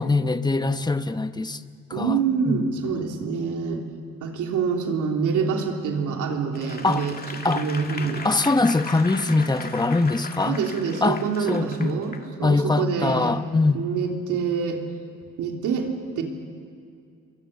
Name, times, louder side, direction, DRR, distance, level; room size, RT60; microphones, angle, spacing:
voice 1, 0.0-1.6 1.9-2.2 2.5-2.6 6.8-7.1 7.4-7.6 8.2-10.6 11.0-11.2 11.5-12.0 12.4-13.8, left 3 dB, 15° left, 10 dB, 1.0 m, -22 dB
voice 2, 1.9-3.8 4.2-7.1 7.5-8.2 10.4-13.3 13.7-14.8 15.4-15.9 16.1-16.2, right 6 dB, 80° right, 2 dB, 3.3 m, -26 dB
Applause / Crowd, 6.5-12.3 12.8-12.9, left 4 dB, 30° left, 2.2 m, -38 dB
29.5 x 23.5 x 6.8 m, 2.4 s
cardioid pair, 90°, 30 cm